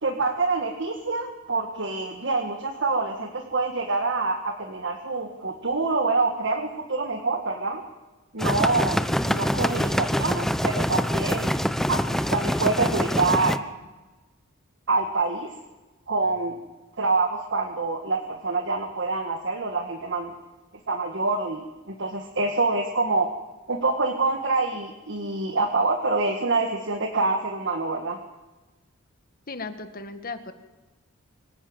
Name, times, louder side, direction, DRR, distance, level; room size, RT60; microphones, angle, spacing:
voice 1, 0.0-7.8 8.3-11.5 11.9-13.6 14.9-15.5 16.1-16.5 17.0-20.3 20.9-23.3 23.7-28.2, right 3 dB, 60° right, 4 dB, 1.9 m, -26 dB
sound 1, 8.4-13.6, equal, ahead, 0.8 m, -25 dB
voice 2, 29.5-30.5, left 3 dB, 45° left, 9 dB, 1.9 m, -36 dB
24.5 x 16.0 x 8.9 m, 1.2 s
head